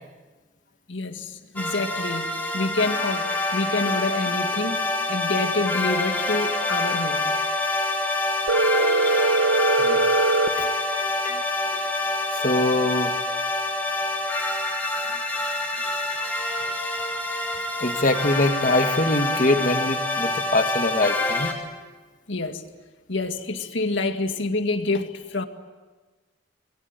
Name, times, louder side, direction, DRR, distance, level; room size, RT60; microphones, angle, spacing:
voice 1, 0.9-7.3 15.3-16.9 22.3-22.6 23.1-25.5, left 2 dB, 75° left, 2.1 m, -28 dB
sound 1, 1.6-21.5, left 2 dB, 10° left, 3.2 m, -26 dB
Telephone, 8.5-10.5, right 3 dB, 70° right, 1.6 m, -21 dB
voice 2, 10.6-11.4 11.7-11.9 12.3-13.1 17.8-21.5, left 2 dB, 40° left, 1.8 m, -24 dB
27.0 x 21.0 x 9.3 m
head